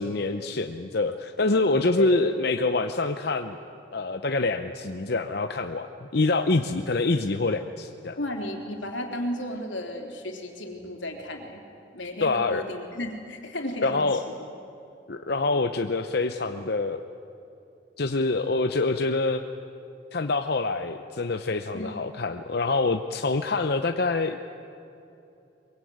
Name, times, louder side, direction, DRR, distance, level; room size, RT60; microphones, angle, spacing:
voice 1, 0.0-3.6 3.9-8.2 12.2-12.6 13.8-14.2 15.1-17.0 18.0-19.4 20.1-24.4, left 3 dB, 55° left, 7 dB, 0.8 m, -26 dB
voice 2, 8.2-11.6 11.9-14.0 21.7-21.9, left 1 dB, 90° left, 3 dB, 3.5 m, -34 dB
23.0 x 23.0 x 9.4 m, 2.8 s
head